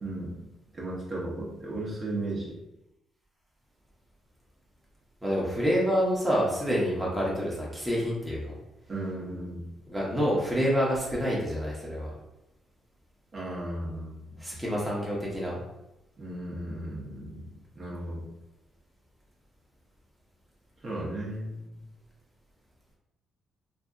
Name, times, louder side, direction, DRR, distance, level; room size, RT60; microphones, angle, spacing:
voice 1, 0.0-0.4 0.7-2.5 8.9-9.6 13.3-14.6 16.2-18.3 20.8-21.8, right 1 dB, 40° right, -5 dB, 0.9 m, -35 dB
voice 2, 5.2-8.6 9.9-12.1 14.4-15.6, equal, 5° right, -5 dB, 0.8 m, -27 dB
2.6 x 2.6 x 2.4 m, 0.91 s
cardioid pair, 90°, 0 cm